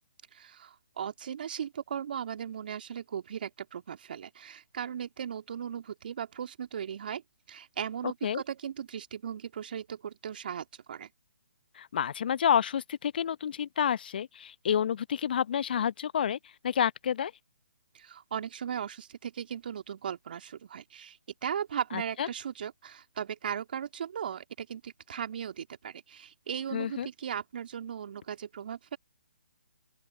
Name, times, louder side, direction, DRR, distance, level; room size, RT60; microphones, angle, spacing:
voice 1, 0.3-7.2 7.5-11.1 17.9-29.0, right 8 dB, 50° right, 2.7 m, -37 dB
voice 2, 11.8-16.4 16.6-17.3 21.9-22.3 26.7-27.1, left 8 dB, 45° left, 0.7 m, -29 dB
open air
figure-of-eight pair, 140°, 7 cm